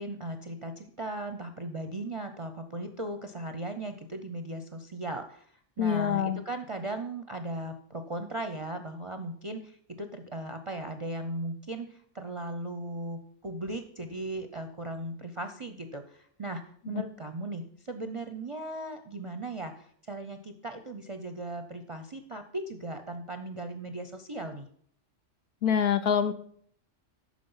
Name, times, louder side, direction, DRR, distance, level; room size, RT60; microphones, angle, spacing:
voice 1, 0.0-5.5 5.8-24.7, right 1 dB, 40° right, 7 dB, 0.5 m, -37 dB
voice 2, 5.8-6.4 16.9-17.0 25.6-26.3, left 8 dB, 60° left, 10 dB, 0.8 m, -25 dB
9.5 x 6.2 x 5.5 m, 0.62 s
omnidirectional pair, 1.3 m